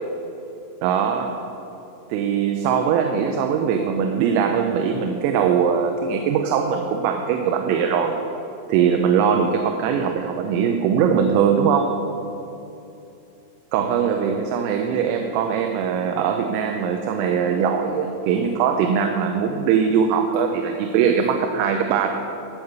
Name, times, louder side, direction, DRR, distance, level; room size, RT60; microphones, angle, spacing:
voice 1, 0.8-1.4 2.1-8.2 8.7-11.9 13.7-22.1, right 7 dB, 90° right, 4 dB, 3.4 m, -21 dB
12.5 x 7.3 x 7.9 m, 2.9 s
omnidirectional pair, 5.8 m